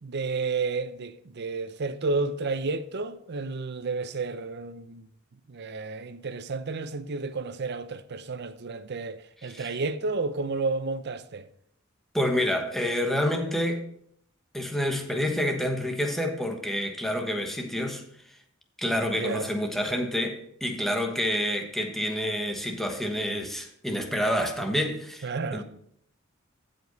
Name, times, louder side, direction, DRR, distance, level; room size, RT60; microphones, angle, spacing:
voice 1, 0.0-5.1 5.5-11.5 19.2-19.5 25.2-25.6, right 3 dB, 55° right, 0.6 m, -31 dB
voice 2, 12.1-13.8 14.5-18.0 18.8-25.6, equal, ahead, 1.2 m, -28 dB
14.5 x 5.2 x 4.0 m
head